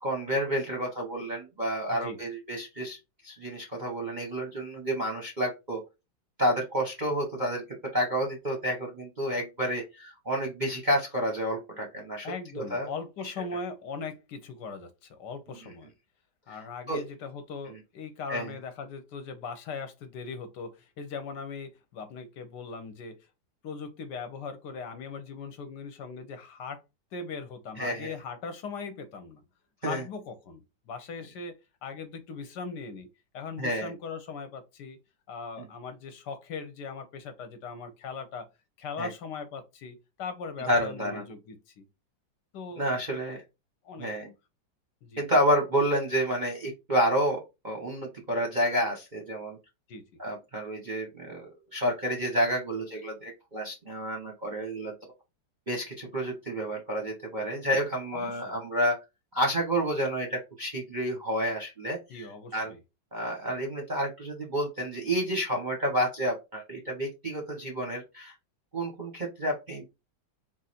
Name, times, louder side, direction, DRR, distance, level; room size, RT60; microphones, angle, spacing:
voice 1, 0.0-3.0 3.2-5.8 6.4-12.9 13.2-13.3 16.9-17.0 18.3-18.5 27.8-28.1 29.8-30.0 33.6-33.9 39.0-39.1 40.7-41.2 42.8-43.4 44.0-44.3 45.2-49.6 50.2-54.9 55.7-59.0 59.3-62.3 62.5-62.7 63.1-68.3 68.7-69.9, equal, 35° right, 0.7 m, -30 dB
voice 2, 12.2-15.9 16.5-23.3 23.6-26.8 27.1-29.4 29.8-31.5 31.8-33.1 33.3-35.0 35.3-38.5 38.8-41.8 42.5-42.8 43.8-44.1 45.0-45.2 49.9-50.0 58.1-58.5 62.1-62.8, left 4 dB, 70° left, 1.2 m, -39 dB
4.0 x 2.5 x 4.2 m
omnidirectional pair, 2.1 m